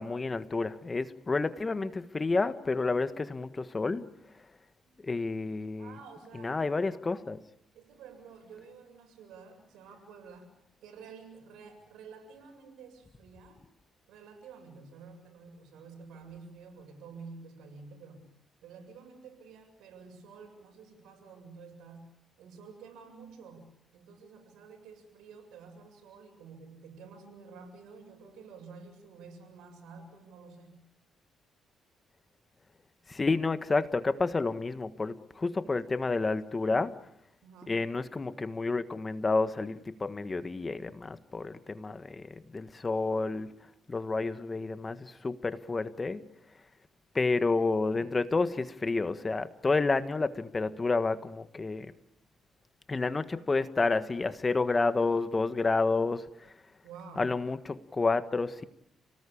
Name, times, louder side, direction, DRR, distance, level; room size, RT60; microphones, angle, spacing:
voice 1, 0.0-4.1 5.0-5.9 6.4-7.4 33.1-36.9 37.7-43.5 43.9-46.2 47.1-51.9 52.9-56.3 57.2-58.7, left 3 dB, 25° left, 12 dB, 1.5 m, -30 dB
voice 2, 5.8-6.6 7.7-10.5 10.8-13.6 14.1-18.3 18.6-22.1 22.4-30.8 37.4-37.8 56.8-57.3, right 5 dB, 85° right, 6 dB, 7.4 m, -50 dB
30.0 x 19.0 x 8.6 m, 0.77 s
cardioid pair, 90°, 0 cm